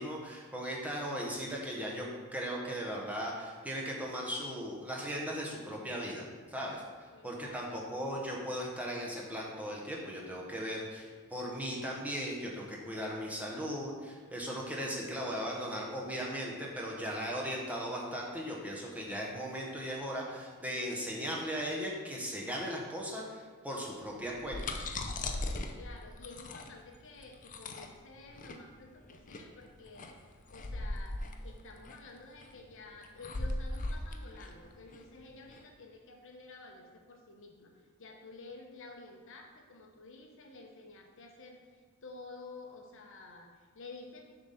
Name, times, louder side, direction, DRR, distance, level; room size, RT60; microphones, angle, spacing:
voice 1, 0.0-6.8 7.2-24.8, equal, 5° right, -3 dB, 1.0 m, -37 dB
voice 2, 7.1-7.8 25.7-44.2, left 3 dB, 60° left, 2 dB, 0.9 m, -51 dB
sound 1, 24.2-35.6, left 2 dB, 35° left, 0.6 m, -39 dB
6.9 x 4.0 x 5.7 m, 1.5 s
head